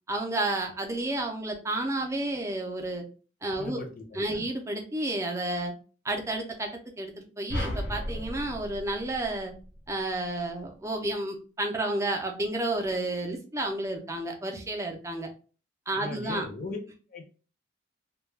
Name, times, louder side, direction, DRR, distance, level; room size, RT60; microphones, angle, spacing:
voice 1, 0.1-3.0 3.4-3.8 4.2-5.7 6.0-6.7 7.0-9.5 9.9-15.3 15.9-16.5, right 1 dB, 15° right, 3 dB, 0.4 m, -31 dB
voice 2, 3.6-4.5 15.9-16.8 17.1-17.2, left 3 dB, 50° left, 3 dB, 0.6 m, -38 dB
sound 1, 7.5-9.9, equal, 90° left, 1.0 m, -35 dB
2.2 x 2.1 x 3.2 m, 0.37 s
head